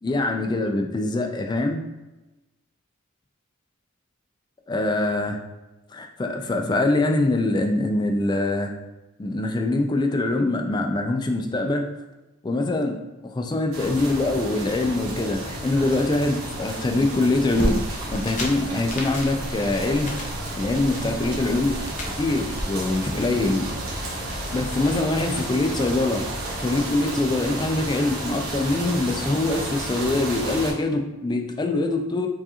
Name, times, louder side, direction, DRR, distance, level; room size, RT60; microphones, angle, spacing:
voice 1, 0.0-1.8 4.7-5.4 5.9-8.7 9.2-11.9 12.4-13.0 13.2-17.8 18.1-20.2 20.6-21.8 22.2-23.7 24.3-26.3 26.6-32.3, left 2 dB, 20° left, 3 dB, 0.3 m, -24 dB
sound 1, 13.7-30.7, right 1 dB, 90° right, 1.0 m, -32 dB
sound 2, 17.5-22.6, equal, 35° left, 0.7 m, -32 dB
4.6 x 2.5 x 2.8 m, 1.1 s
head